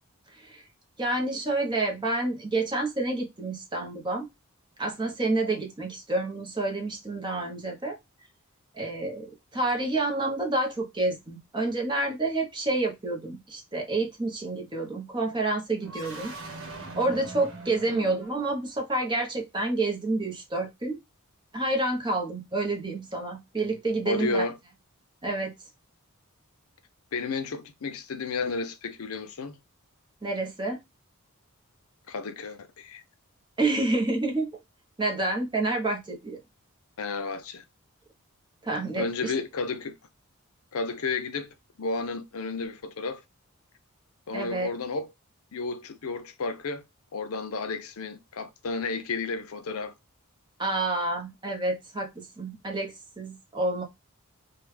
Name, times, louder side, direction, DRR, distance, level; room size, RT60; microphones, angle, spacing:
voice 1, 1.0-4.3 4.8-8.0 8.8-16.3 17.0-21.0 21.5-24.4 25.2-25.5 30.2-30.8 33.6-34.5 35.0-36.4 38.6-39.3 44.3-44.7 50.6-53.8, right 2 dB, 20° right, 0.8 m, -29 dB
sound 1, 15.8-18.8, right 3 dB, 60° right, 1.1 m, -42 dB
voice 2, 24.1-24.6 27.1-29.6 32.1-33.0 37.0-37.6 39.0-39.9 40.7-43.2 44.3-45.1 45.5-46.8 47.1-49.9, left 3 dB, 80° left, 0.6 m, -32 dB
3.4 x 2.2 x 3.1 m
head